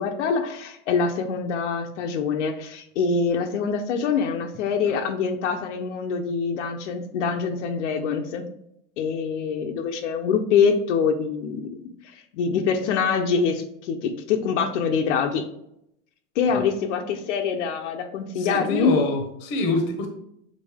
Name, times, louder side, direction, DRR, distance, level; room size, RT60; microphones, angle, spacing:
voice 1, 0.0-8.4 9.0-15.5 16.4-19.0, left 6 dB, 70° left, 4 dB, 0.8 m, -25 dB
voice 2, 18.4-20.1, left 2 dB, 30° left, 5 dB, 1.0 m, -25 dB
7.5 x 4.0 x 3.5 m, 0.76 s
supercardioid pair, 175°, 37 cm